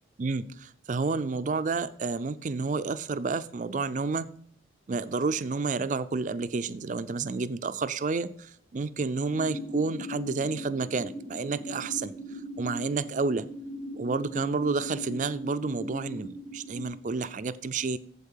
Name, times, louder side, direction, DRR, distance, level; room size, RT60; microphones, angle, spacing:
voice 1, 0.2-4.3 4.9-12.1 12.6-13.5 14.0-18.0, right 4 dB, 40° right, 14 dB, 0.4 m, -30 dB
sound 1, 9.3-16.8, equal, 60° left, 2.7 m, -39 dB
8.1 x 7.7 x 5.6 m, 0.64 s
head